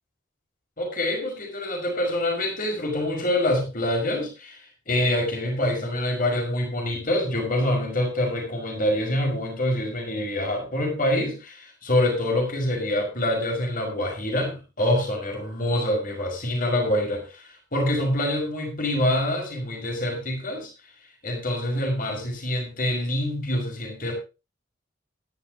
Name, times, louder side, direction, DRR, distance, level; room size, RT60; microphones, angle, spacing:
voice 1, 0.8-4.6 4.9-20.7 21.2-24.1, left 1 dB, 45° left, 2 dB, 5.7 m, -26 dB
13.0 x 11.5 x 3.8 m, 0.30 s
head